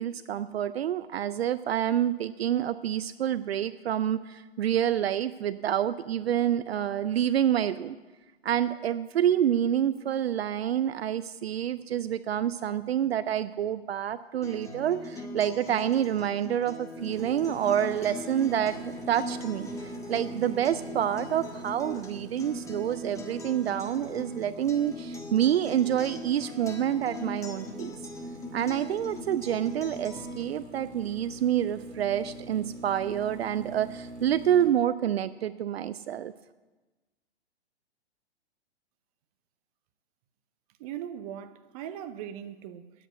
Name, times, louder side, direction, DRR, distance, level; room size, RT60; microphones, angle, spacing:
voice 1, 0.0-8.0 8.4-19.7 20.1-28.0 28.5-36.3, right 10 dB, 70° right, 0.5 m, -28 dB
Acoustic guitar, 14.4-30.4, left 1 dB, 10° left, 1.6 m, -41 dB
sound 1, 16.9-34.7, right 1 dB, 85° right, 1.5 m, -44 dB
voice 2, 40.8-42.9, right 10 dB, 35° right, 0.8 m, -39 dB
9.9 x 8.1 x 9.2 m
hypercardioid pair, 120°, 32 cm